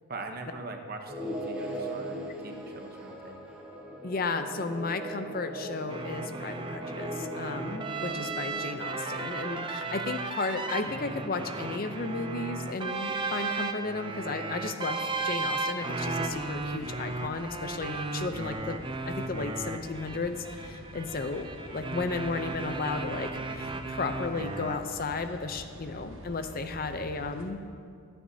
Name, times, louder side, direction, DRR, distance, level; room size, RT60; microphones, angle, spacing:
voice 1, 0.1-3.4, right 3 dB, 40° right, 4 dB, 0.9 m, -42 dB
sound 1, 1.1-8.6, right 1 dB, 5° right, 1.3 m, -39 dB
voice 2, 4.0-18.8 19.1-27.6, left 3 dB, 40° left, 8 dB, 0.5 m, -34 dB
sound 2, 5.9-24.8, right 3 dB, 20° right, 0.5 m, -35 dB
sound 3, 16.0-27.5, equal, 60° right, 1.3 m, -47 dB
24.5 x 9.4 x 2.8 m, 2.3 s
head